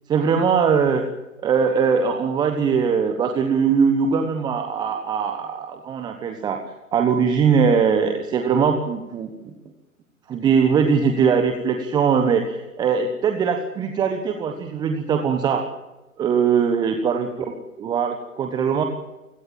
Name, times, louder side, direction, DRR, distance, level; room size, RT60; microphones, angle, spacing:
voice 1, 0.1-1.0 1.4-6.6 6.9-9.3 10.3-15.7 16.2-17.3 17.8-18.8, right 6 dB, 10° right, 5 dB, 1.1 m, -21 dB
28.0 x 17.0 x 7.6 m, 1.0 s
figure-of-eight pair, 130°, 42 cm